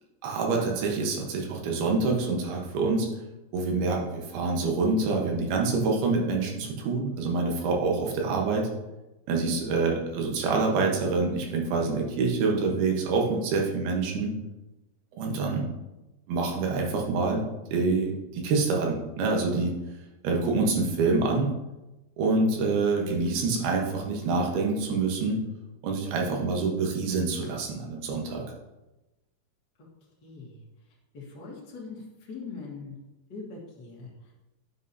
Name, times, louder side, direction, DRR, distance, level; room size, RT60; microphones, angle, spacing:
voice 1, 0.2-3.1 3.5-8.7 9.3-14.3 15.1-15.7 16.3-17.4 17.7-19.7 20.2-21.5 22.2-25.4 25.8-28.4, right 3 dB, 75° right, 0 dB, 3.0 m, -26 dB
voice 2, 30.2-30.6 31.1-32.0 32.3-33.0 33.3-34.1, left 4 dB, 80° left, -5 dB, 0.9 m, -41 dB
11.0 x 5.6 x 2.7 m, 1.0 s
omnidirectional pair, 4.7 m